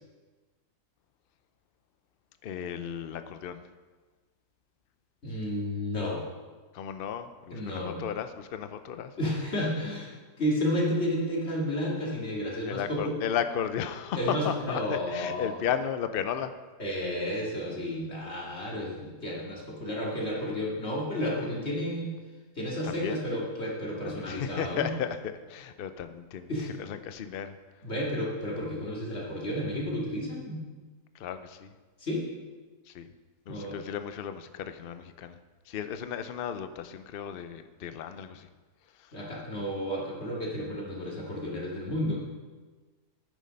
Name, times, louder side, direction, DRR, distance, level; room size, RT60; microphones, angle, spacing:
voice 1, 2.4-3.6 6.7-9.1 12.7-16.5 22.8-23.2 24.0-26.5 26.8-27.6 31.2-31.7 32.9-33.1 33.5-35.4 35.7-38.5, left 8 dB, 90° left, 10 dB, 0.5 m, -34 dB
voice 2, 5.2-6.2 7.5-8.0 9.2-13.2 14.2-15.6 16.8-22.1 22.6-24.9 26.5-26.7 27.8-30.6 32.0-32.2 33.5-33.8 39.1-42.2, equal, 40° left, -4 dB, 2.7 m, -32 dB
9.7 x 9.6 x 5.3 m, 1.3 s
omnidirectional pair, 1.7 m